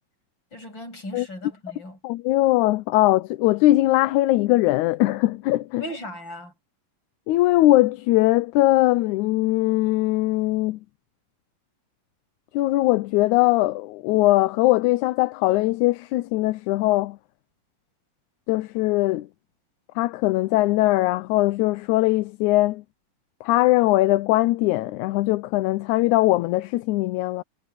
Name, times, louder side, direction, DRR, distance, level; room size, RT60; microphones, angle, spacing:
voice 1, 0.5-2.0 5.8-6.5, left 1 dB, 35° left, 7.7 m, -37 dB
voice 2, 2.0-5.8 7.3-10.8 12.5-17.2 18.5-19.3 20.0-22.8 23.4-27.4, left 17 dB, 80° left, 1.9 m, -20 dB
omnidirectional pair, 3.7 m